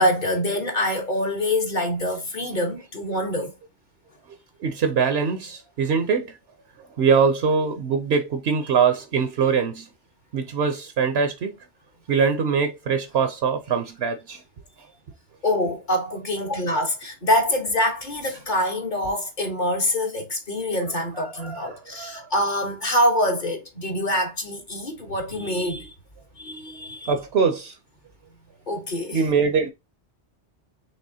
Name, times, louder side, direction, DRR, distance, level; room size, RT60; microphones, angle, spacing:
voice 1, 0.0-3.5 15.4-25.9 26.4-27.1 28.7-29.2, left 1 dB, 45° left, 1.2 m, -25 dB
voice 2, 4.3-6.3 7.0-9.9 10.3-11.6 12.1-14.4 21.3-22.3 27.1-27.8 29.1-29.7, right 6 dB, 65° right, 0.9 m, -23 dB
5.4 x 3.2 x 2.7 m
omnidirectional pair, 1.2 m